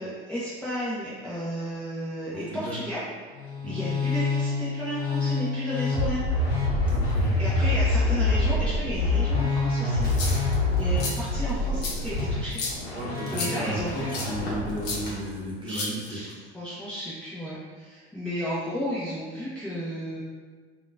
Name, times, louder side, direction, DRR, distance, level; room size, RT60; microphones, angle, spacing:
voice 1, 0.0-3.0 3.6-6.2 7.4-10.1 10.8-12.6 13.3-14.1 15.6-20.2, equal, 5° left, -11 dB, 0.6 m, -33 dB
voice 2, 2.3-2.8 3.6-3.8 6.8-7.3 12.9-16.2, right 1 dB, 15° right, -6 dB, 1.0 m, -34 dB
Musical instrument, 3.3-15.1, left 2 dB, 85° left, 0.7 m, -26 dB
sound 1, 10.0-10.6 11.0-11.1 11.8-11.9 12.5-12.8 13.3-13.5 14.1-14.3 14.8-15.0 15.7-16.3, left 3 dB, 50° left, 0.7 m, -32 dB
Crackle, 10.0-15.2, left 1 dB, 30° left, 1.2 m, -46 dB
3.6 x 2.3 x 2.4 m, 1.5 s
hypercardioid pair, 70°, 31 cm